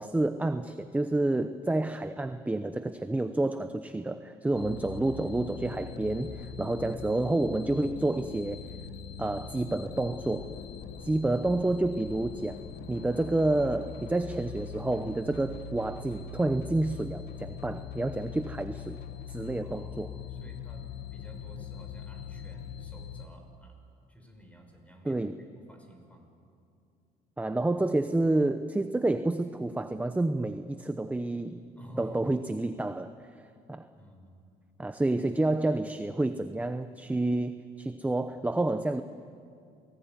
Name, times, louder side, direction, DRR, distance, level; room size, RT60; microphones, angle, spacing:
voice 1, 0.0-8.6 9.2-10.5 11.0-19.0 19.3-20.1 25.0-25.4 27.4-31.6 32.0-33.3 33.7-33.9 34.8-39.0, right 2 dB, 10° right, 9 dB, 0.8 m, -29 dB
sound 1, 4.5-23.3, left 7 dB, 75° left, 1.7 m, -42 dB
voice 2, 4.5-5.1 19.6-23.8 24.1-26.3 31.8-32.5 34.0-34.4, right 1 dB, 10° left, 3 dB, 6.2 m, -51 dB
28.0 x 19.0 x 9.7 m, 2.4 s
cardioid pair, 110°, 17 cm